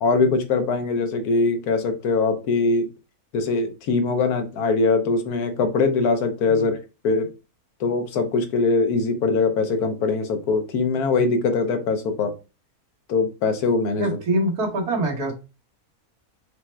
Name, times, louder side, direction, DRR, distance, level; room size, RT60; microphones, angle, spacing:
voice 1, 0.0-2.9 3.3-6.8 7.0-7.3 7.8-12.3 13.1-14.2, left 4 dB, 80° left, 7 dB, 1.3 m, -22 dB
voice 2, 14.0-15.3, right 1 dB, 80° right, 0 dB, 1.8 m, -24 dB
4.9 x 2.1 x 4.3 m, 0.29 s
omnidirectional pair, 1.6 m